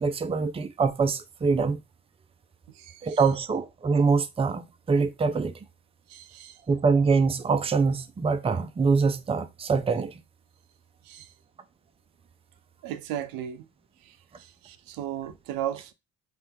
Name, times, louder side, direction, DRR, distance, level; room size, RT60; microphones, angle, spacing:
voice 1, 0.0-1.8 3.0-5.5 6.7-10.2, right 4 dB, 15° right, 0.4 m, -24 dB
voice 2, 2.7-3.2 6.1-6.6 11.1-11.3 12.8-13.6 14.1-15.9, right 11 dB, 80° right, 0.5 m, -36 dB
3.3 x 2.9 x 3.5 m
supercardioid pair, 65°, 35 cm